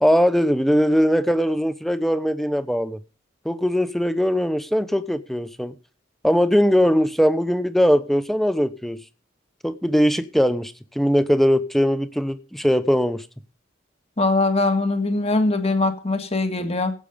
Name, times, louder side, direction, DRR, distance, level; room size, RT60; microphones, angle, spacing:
voice 1, 0.0-3.0 3.4-5.7 6.2-9.0 9.6-13.2, equal, ahead, 0.9 m, -20 dB
voice 2, 14.2-16.9, left 2 dB, 35° left, 1.8 m, -21 dB
16.5 x 8.3 x 5.1 m
head